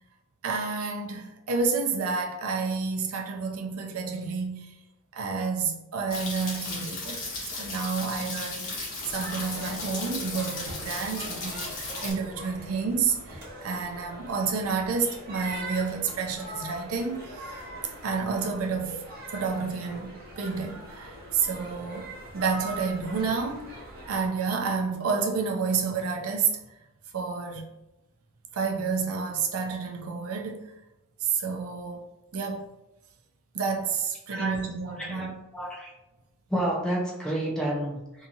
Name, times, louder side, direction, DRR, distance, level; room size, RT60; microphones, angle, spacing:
voice 1, 0.4-4.7 5.1-7.2 7.5-8.8 9.0-17.3 18.0-19.0 19.3-23.8 24.1-26.6 27.1-27.6 28.5-30.7 31.2-32.0 32.3-32.6 33.5-35.3, right 5 dB, 90° right, 0.5 m, -30 dB
sound 1, 6.1-12.1, left 3 dB, 70° left, 1.0 m, -35 dB
sound 2, 9.0-24.3, right 1 dB, 50° right, 0.9 m, -42 dB
voice 2, 35.0-35.9 36.5-38.3, right 1 dB, 5° left, 0.6 m, -30 dB
2.8 x 2.7 x 2.4 m
head